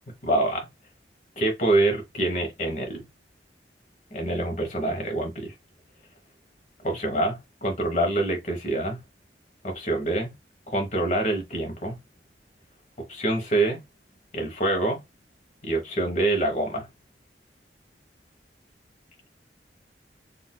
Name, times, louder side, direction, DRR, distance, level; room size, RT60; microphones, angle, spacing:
voice 1, 0.2-0.7 1.4-3.0 4.1-5.5 6.8-9.0 9.6-10.3 10.7-12.0 13.1-13.8 14.3-15.0 15.6-16.9, right 2 dB, 45° left, 1.2 m, -26 dB
3.9 x 2.6 x 2.2 m
head